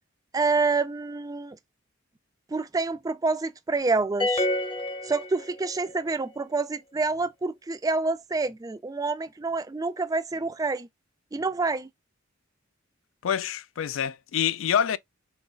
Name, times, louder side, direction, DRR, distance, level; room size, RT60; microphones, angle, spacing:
voice 1, 0.3-1.6 2.5-4.5 5.0-10.9 11.3-11.9, right 3 dB, 20° right, 0.3 m, -27 dB
sound 1, 4.2-5.9, left 2 dB, 25° left, 0.7 m, -28 dB
voice 2, 13.2-15.0, left 8 dB, 70° left, 0.4 m, -26 dB
3.8 x 3.8 x 2.2 m
head